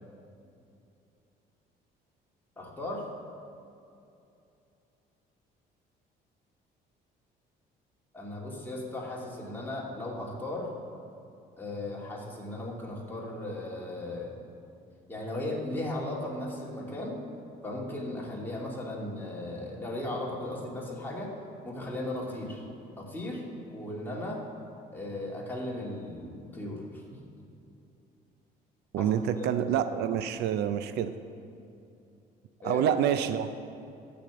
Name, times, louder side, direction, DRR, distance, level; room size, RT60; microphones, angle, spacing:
voice 1, 2.6-3.0 8.1-10.7 11.6-14.3 15.1-17.2 17.6-21.3 21.6-22.7 23.0-24.4 24.9-26.8 29.0-29.1 29.4-29.8 32.6-32.9, left 1 dB, 10° left, -4 dB, 2.5 m, -36 dB
voice 2, 28.9-31.1 32.6-33.5, right 9 dB, 80° right, 11 dB, 0.5 m, -27 dB
12.5 x 5.2 x 7.8 m, 2.6 s
cardioid pair, 110°, 17 cm